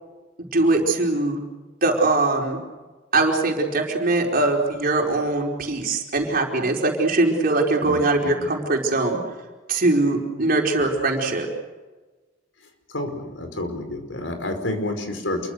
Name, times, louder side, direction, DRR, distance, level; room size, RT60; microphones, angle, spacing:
voice 1, 0.5-1.4 1.8-2.6 3.1-9.2 9.7-11.5, right 2 dB, 50° right, 1 dB, 4.7 m, -21 dB
voice 2, 7.8-8.3 10.8-10.9 12.9-15.5, left 1 dB, 85° left, 6 dB, 5.0 m, -29 dB
28.0 x 23.5 x 6.7 m, 1.3 s
head